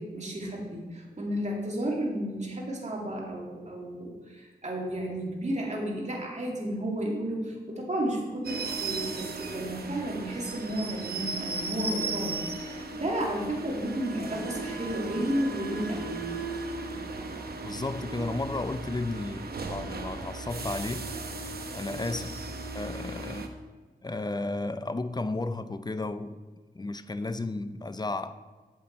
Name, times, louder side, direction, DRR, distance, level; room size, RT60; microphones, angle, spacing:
voice 1, 0.0-16.2, right 1 dB, 45° right, -2 dB, 2.1 m, -32 dB
sound 1, 8.4-23.5, right 3 dB, 70° right, 0.8 m, -36 dB
voice 2, 17.6-21.1 21.7-22.4 22.7-23.5 24.0-26.4 26.7-28.4, left 2 dB, 25° left, 11 dB, 0.4 m, -33 dB
7.7 x 7.4 x 4.3 m, 1.3 s
cardioid pair, 55°, 17 cm